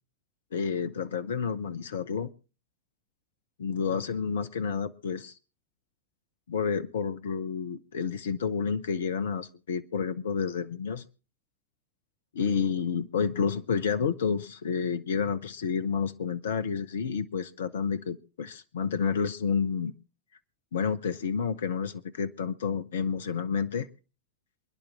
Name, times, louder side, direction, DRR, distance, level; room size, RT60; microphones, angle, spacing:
voice 1, 0.5-2.3 3.6-5.3 6.5-11.0 12.3-19.9 20.7-23.9, left 6 dB, 60° left, 13 dB, 0.8 m, -30 dB
28.0 x 10.5 x 3.6 m, 0.37 s
figure-of-eight pair, 90°, 0 cm